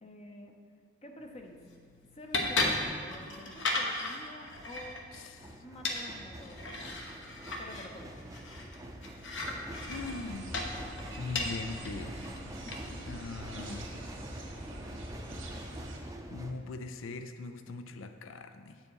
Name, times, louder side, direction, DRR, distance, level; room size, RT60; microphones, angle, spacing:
voice 1, 0.0-0.5 1.0-1.6 2.1-5.0 5.6-6.9 7.6-8.1 12.6-13.2, left 1 dB, 30° left, 2 dB, 0.7 m, -49 dB
sound 1, 1.2-13.1, left 2 dB, 65° left, 1.0 m, -37 dB
sound 2, 3.1-3.3 4.3-16.5, right 1 dB, 15° right, 0.6 m, -45 dB
voice 2, 5.1-5.6 6.7-6.8 9.9-10.6 11.2-12.3 13.1-13.9 15.6-15.8 16.3-18.8, left 3 dB, 85° left, 9 dB, 0.5 m, -41 dB
sound 3, 9.8-16.0, right 1 dB, 90° right, 1.7 m, -46 dB
8.1 x 7.6 x 4.7 m, 2.2 s
head